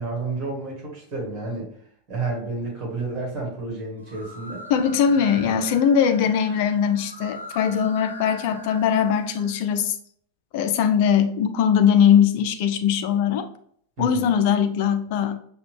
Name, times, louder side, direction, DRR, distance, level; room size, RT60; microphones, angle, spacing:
voice 1, 0.0-1.7 2.1-4.7 5.3-5.6 14.0-14.3, right 3 dB, 35° right, -1 dB, 1.8 m, -31 dB
sound 1, 4.0-9.8, equal, 90° right, 0.7 m, -42 dB
voice 2, 4.7-10.0 10.5-13.5 14.0-15.4, left 8 dB, 45° left, 8 dB, 0.4 m, -20 dB
5.7 x 2.3 x 3.4 m, 0.62 s
figure-of-eight pair, 90°, 0 cm